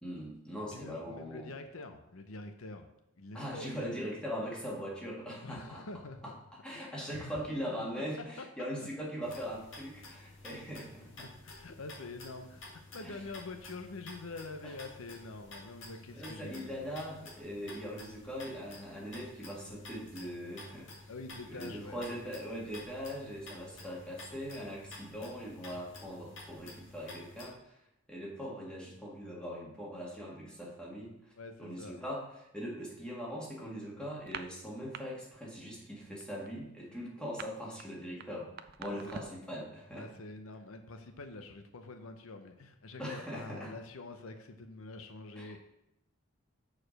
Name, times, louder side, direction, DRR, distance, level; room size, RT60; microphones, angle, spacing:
voice 1, 0.0-1.5 3.3-5.8 6.2-6.3 6.6-11.3 13.0-13.2 14.6-14.7 16.1-21.0 21.5-27.8 28.1-31.3 31.6-32.2 32.5-38.5 38.8-40.1 43.0-43.7 45.4-45.5, equal, 5° left, -4 dB, 1.8 m, -41 dB
voice 2, 0.7-2.9 3.2-4.2 5.4-6.3 6.7-7.4 7.7-8.5 8.8-8.9 11.2-16.9 21.1-22.1 31.4-32.0 38.8-39.4 39.9-45.6, left 3 dB, 75° left, 7 dB, 0.7 m, -46 dB
sound 1, 9.2-27.5, left 2 dB, 55° left, 1.8 m, -51 dB
sound 2, 34.2-35.0 35.3-35.6 35.9-39.5, right 7 dB, 45° right, 0.4 m, -46 dB
6.5 x 4.9 x 6.3 m, 0.86 s
head